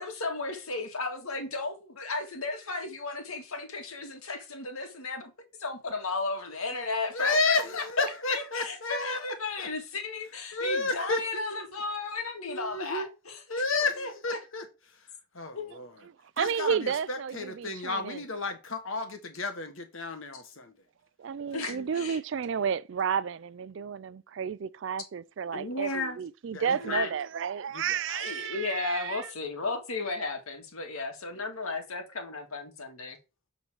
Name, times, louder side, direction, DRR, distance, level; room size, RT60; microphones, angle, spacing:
voice 1, 0.0-5.3 5.6-7.8 8.3-13.4 13.7-14.4 15.5-15.8 21.5-22.2 25.5-26.2 26.8-27.1 28.1-33.2, left 3 dB, 80° left, 1.9 m, -34 dB
voice 2, 7.1-9.3 9.6-9.7 10.5-11.4 12.5-13.1 13.5-15.1 15.3-16.0 16.4-20.8 26.5-27.0 27.7-28.1, left 3 dB, 65° left, 1.4 m, -32 dB
voice 3, 16.4-18.2 21.2-29.3, right 7 dB, 55° right, 0.3 m, -32 dB
7.3 x 3.9 x 4.8 m
head